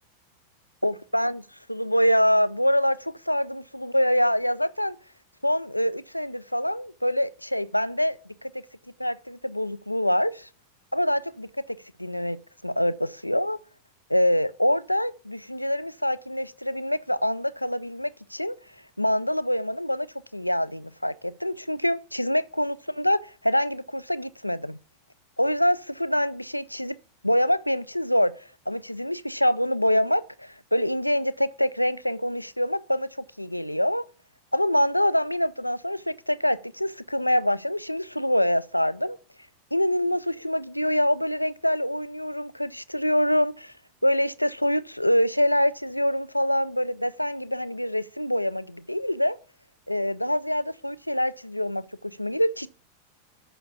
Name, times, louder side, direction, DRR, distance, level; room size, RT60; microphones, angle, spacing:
voice 1, 0.8-5.0 5.4-8.5 9.0-10.5 10.9-12.4 12.6-13.6 14.1-18.6 19.0-20.1 20.3-24.8 25.4-26.9 27.2-28.3 28.7-33.1 33.4-34.0 34.5-39.2 39.7-43.7 44.0-49.4 49.9-52.7, equal, 90° left, 0.4 m, -25 dB
6.9 x 5.9 x 6.9 m
figure-of-eight pair, 90°, 0 cm